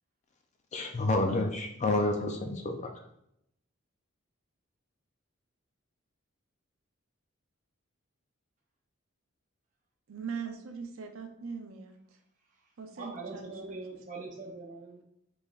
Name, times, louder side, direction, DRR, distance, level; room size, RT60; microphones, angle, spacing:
voice 1, 0.7-2.9, left 2 dB, 35° left, 3 dB, 0.4 m, -29 dB
voice 2, 10.1-12.0 12.8-13.8, right 6 dB, 75° right, 5 dB, 0.5 m, -41 dB
voice 3, 13.0-15.0, right 3 dB, 35° right, 0 dB, 0.7 m, -42 dB
4.2 x 3.3 x 2.4 m, 0.76 s
head